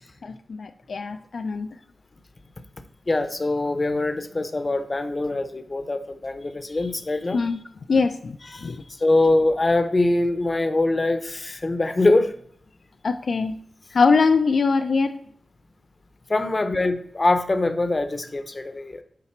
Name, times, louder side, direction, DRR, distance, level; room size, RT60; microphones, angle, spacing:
voice 1, 0.2-1.7 7.3-7.6 7.9-8.4 8.6-8.8 13.0-13.6 13.9-15.2, left 4 dB, 65° left, 6 dB, 0.4 m, -22 dB
voice 2, 3.1-7.4 8.5-8.7 9.0-12.3 16.3-19.0, left 2 dB, 30° left, 10 dB, 0.7 m, -23 dB
9.8 x 4.1 x 4.4 m, 0.67 s
wide cardioid pair, 120°, 0 cm